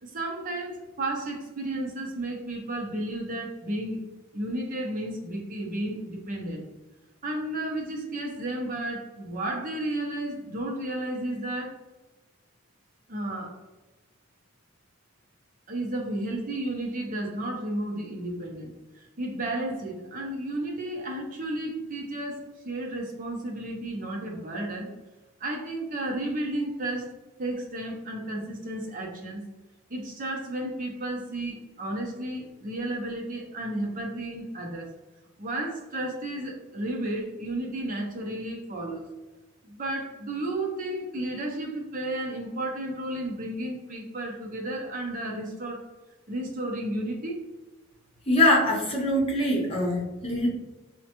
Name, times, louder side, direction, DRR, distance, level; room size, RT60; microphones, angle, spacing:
voice 1, 0.0-4.0 4.3-6.6 7.2-11.8 13.1-13.6 15.7-24.9 25.4-27.1 27.4-29.4 29.9-34.9 35.4-39.1 39.6-45.9 46.3-47.4, right 1 dB, 40° right, 0 dB, 0.6 m, -33 dB
voice 2, 48.3-50.5, left 1 dB, 25° left, -2 dB, 0.8 m, -23 dB
5.2 x 2.1 x 2.9 m, 1.1 s
head